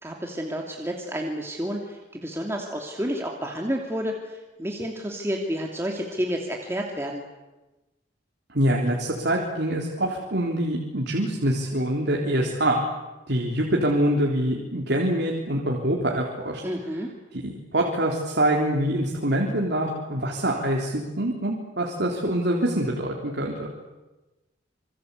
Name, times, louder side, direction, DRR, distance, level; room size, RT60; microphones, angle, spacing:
voice 1, 0.0-7.2 16.6-17.1, equal, 15° right, 1 dB, 2.8 m, -30 dB
voice 2, 8.5-12.8 13.3-16.6 17.4-23.7, right 1 dB, 60° right, 0 dB, 3.6 m, -25 dB
27.5 x 25.0 x 8.4 m, 1.1 s
head